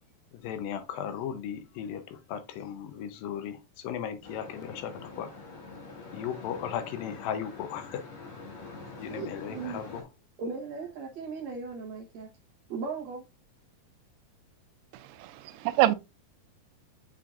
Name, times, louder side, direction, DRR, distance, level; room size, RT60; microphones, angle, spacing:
voice 1, 0.3-5.3 6.1-8.0 9.0-10.1, left 8 dB, 75° left, 2.3 m, -36 dB
sound 1, 4.2-10.0, left 3 dB, 50° left, 2.7 m, -45 dB
voice 2, 9.1-9.8 10.4-12.3 12.7-13.2, right 4 dB, 70° right, 1.7 m, -37 dB
voice 3, 14.9-16.0, right 16 dB, 85° right, 2.7 m, -26 dB
7.5 x 5.5 x 2.5 m
omnidirectional pair, 4.7 m